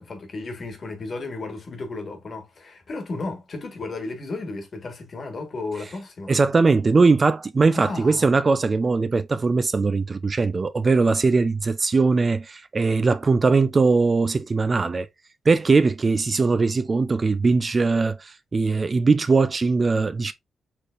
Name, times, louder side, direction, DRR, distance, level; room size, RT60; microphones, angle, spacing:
voice 1, 0.0-6.3 7.7-8.3, left 3 dB, 50° left, 1.4 m, -34 dB
voice 2, 6.3-15.1 15.5-20.3, right 4 dB, 40° right, 0.4 m, -20 dB
4.4 x 3.2 x 2.4 m
cardioid pair, 70°, 0 cm